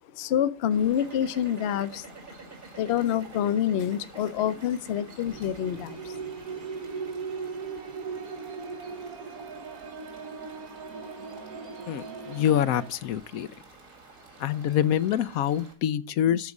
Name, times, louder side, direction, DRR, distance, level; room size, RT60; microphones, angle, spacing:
voice 1, 0.1-2.1 2.8-6.2, left 10 dB, 55° left, 0.9 m, -27 dB
sound 1, 0.7-15.7, right 3 dB, 70° right, 3.0 m, -52 dB
sound 2, 0.9-11.1, right 4 dB, 45° right, 1.4 m, -49 dB
sound 3, 5.3-12.9, right 5 dB, 85° right, 1.5 m, -38 dB
voice 2, 11.9-13.5 14.4-16.5, left 10 dB, 80° left, 1.0 m, -26 dB
13.0 x 4.8 x 5.2 m
omnidirectional pair, 1.5 m